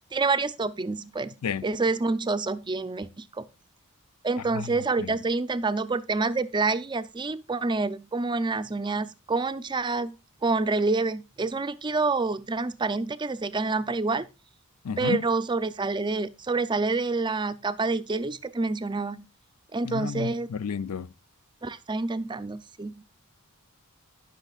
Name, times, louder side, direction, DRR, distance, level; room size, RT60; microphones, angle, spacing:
voice 1, 0.1-1.3 1.6-3.4 4.2-10.1 10.4-14.3 15.0-19.3 19.7-20.5 21.6-23.0, right 3 dB, 20° right, 0.5 m, -27 dB
voice 2, 14.8-15.3 19.8-21.1, left 6 dB, 75° left, 0.5 m, -31 dB
18.5 x 6.3 x 2.4 m
head